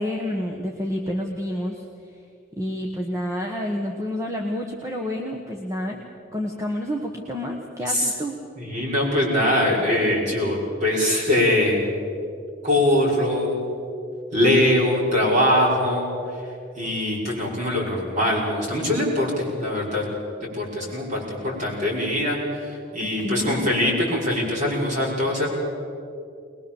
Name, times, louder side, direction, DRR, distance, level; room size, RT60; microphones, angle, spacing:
voice 1, 0.0-2.2 2.5-6.0 6.3-8.4 23.2-23.7, left 1 dB, 15° right, 1 dB, 1.4 m, -29 dB
voice 2, 8.6-11.9 12.6-13.6 14.3-16.1 16.8-20.0 20.5-25.5, left 1 dB, 40° right, -3 dB, 5.9 m, -22 dB
21.5 x 21.5 x 7.3 m, 2.5 s
head